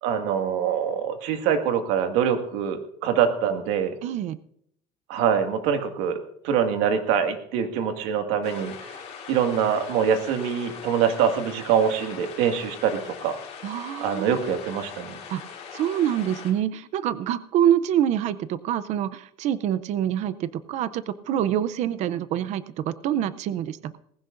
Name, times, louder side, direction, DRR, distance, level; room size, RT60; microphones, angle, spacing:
voice 1, 0.0-3.9 5.1-6.2 6.4-13.4 14.0-15.2, right 8 dB, 85° right, 6 dB, 1.9 m, -24 dB
voice 2, 4.0-4.4 13.6-14.3 15.3-15.4 15.7-24.0, right 10 dB, 40° right, 15 dB, 0.6 m, -26 dB
sound 1, 8.4-16.5, left 7 dB, 35° left, 3.4 m, -41 dB
19.0 x 16.0 x 2.6 m, 0.70 s
cardioid pair, 180°, 17 cm